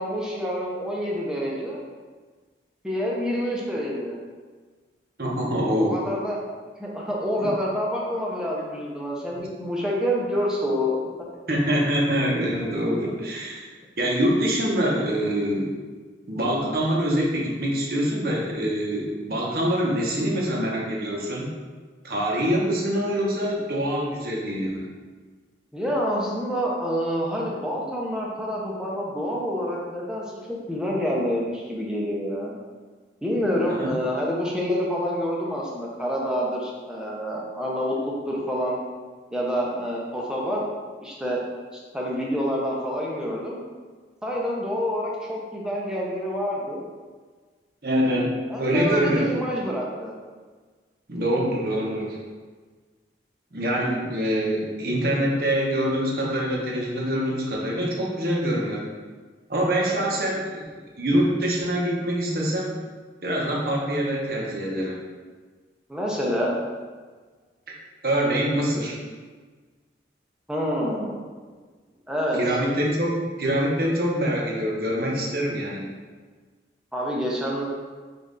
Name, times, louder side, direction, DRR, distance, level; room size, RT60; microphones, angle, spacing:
voice 1, 0.0-1.8 2.8-4.2 5.8-6.4 6.8-11.0 25.7-32.5 33.2-38.8 39.3-40.7 41.0-41.4 41.7-43.6 44.2-46.8 48.5-50.2 59.9-60.1 65.9-66.6 70.5-71.2 72.1-72.6 76.9-77.6, equal, 5° right, -4 dB, 0.6 m, -27 dB
voice 2, 5.2-6.0 7.4-7.5 11.5-13.7 14.0-15.7 16.3-21.5 22.0-24.9 33.6-33.9 47.8-48.3 48.6-49.3 51.1-52.2 53.5-58.9 59.5-60.6 61.0-62.8 63.2-65.0 67.7-67.8 68.0-69.0 72.3-75.9, equal, 55° right, -2 dB, 0.9 m, -25 dB
5.3 x 2.6 x 3.8 m, 1.4 s
head